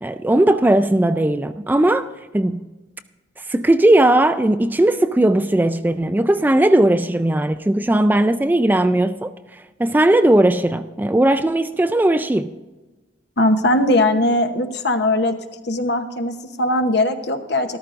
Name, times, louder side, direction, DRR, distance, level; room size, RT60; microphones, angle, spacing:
voice 1, 0.0-2.6 3.5-9.3 9.8-12.5, right 1 dB, 10° right, 0.3 m, -17 dB
voice 2, 13.4-15.3 15.6-17.8, left 1 dB, 60° left, 1.0 m, -19 dB
13.5 x 13.0 x 2.5 m
head